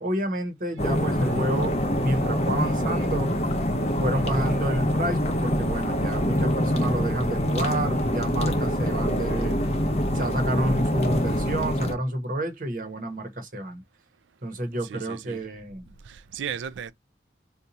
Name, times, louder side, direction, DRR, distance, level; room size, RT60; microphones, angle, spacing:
voice 1, 0.0-3.3 4.0-9.6 10.1-13.8 14.4-15.9, right 1 dB, 45° right, 0.9 m, -29 dB
sound 1, 0.8-11.9, equal, 35° left, 0.6 m, -25 dB
voice 2, 14.9-15.4 16.0-16.9, right 8 dB, 85° right, 0.3 m, -35 dB
2.6 x 2.3 x 4.0 m
head